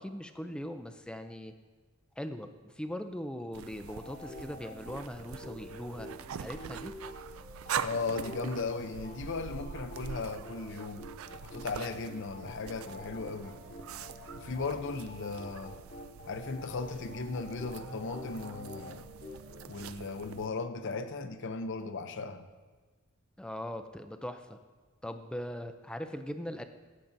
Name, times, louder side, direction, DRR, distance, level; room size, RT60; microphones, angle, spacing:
voice 1, 0.0-1.6 2.2-6.9 23.4-24.6 25.0-26.6, equal, 5° left, 8 dB, 0.4 m, -40 dB
sound 1, 3.5-20.5, right 8 dB, 70° right, 0.4 m, -44 dB
sound 2, 3.9-9.2 9.5-19.9, left 1 dB, 40° left, 1.0 m, -48 dB
voice 2, 7.8-11.1 11.4-13.6 14.3-15.8 16.3-19.1 19.7-22.4, left 3 dB, 60° left, 9 dB, 0.6 m, -37 dB
15.5 x 7.5 x 2.7 m, 1.4 s
head